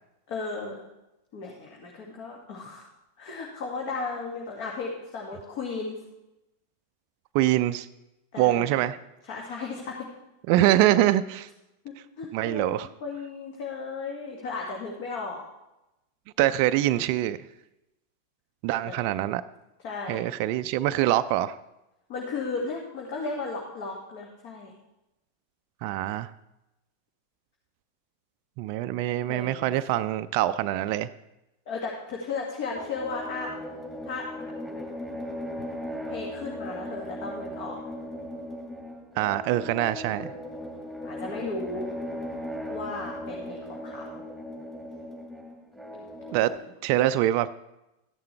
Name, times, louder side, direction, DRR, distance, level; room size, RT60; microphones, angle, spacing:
voice 1, 0.3-0.8 1.3-2.9 3.2-6.0 8.3-8.8 9.3-10.1 11.8-15.4 18.9-19.1 19.8-20.2 22.1-24.7 29.3-29.7 31.7-33.5 34.0-34.3 36.1-37.8 41.0-41.9 42.7-44.2 45.9-46.1 46.5-46.6, left 4 dB, 45° left, -2 dB, 1.9 m, -35 dB
voice 2, 7.3-7.9 8.4-9.0 10.5-11.5 12.3-12.9 16.4-17.4 18.6-19.4 20.1-21.6 25.8-26.3 28.6-31.1 39.2-40.3 46.3-46.5 46.8-47.5, right 14 dB, 45° right, 11 dB, 0.4 m, -24 dB
sound 1, 32.7-46.6, equal, ahead, 2.0 m, -37 dB
13.5 x 10.5 x 3.3 m, 0.92 s
figure-of-eight pair, 90°, 0 cm